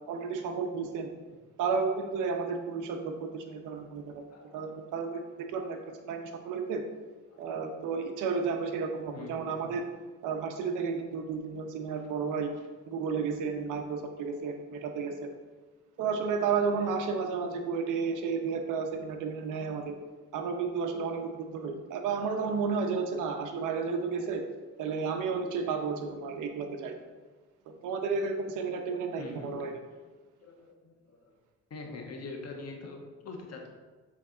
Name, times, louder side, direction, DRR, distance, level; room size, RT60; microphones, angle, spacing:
voice 1, 0.1-1.1 1.6-4.2 4.5-5.2 5.5-6.8 7.4-9.9 10.2-12.5 12.9-15.3 16.0-20.0 20.3-24.5 24.8-26.9 27.7-29.7, right 5 dB, 90° right, 5 dB, 0.8 m, -32 dB
voice 2, 5.3-5.7 7.3-7.5 9.1-9.7 16.4-16.9 22.1-22.5 23.3-23.5 24.1-24.3 25.6-25.8 29.2-29.7 30.4-31.3 31.7-33.7, left 3 dB, 55° left, 1 dB, 1.2 m, -45 dB
7.9 x 3.5 x 3.8 m, 1.3 s
cardioid pair, 90°, 30 cm